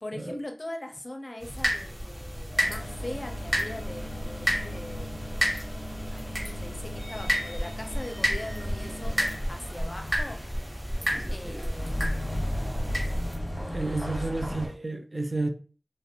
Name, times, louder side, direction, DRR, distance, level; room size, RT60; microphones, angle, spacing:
voice 1, 0.0-5.4 6.1-10.4 11.3-12.6 13.7-14.7, left 1 dB, 45° left, 0.5 m, -41 dB
sound 1, 1.4-13.4, equal, 25° right, 1.1 m, -31 dB
sound 2, 2.5-14.7, left 1 dB, ahead, 1.2 m, -37 dB
sound 3, 8.4-14.8, equal, 80° right, 0.8 m, -46 dB
voice 2, 13.7-15.5, right 2 dB, 45° right, 0.4 m, -31 dB
2.4 x 2.0 x 2.7 m
wide cardioid pair, 55°, 0 cm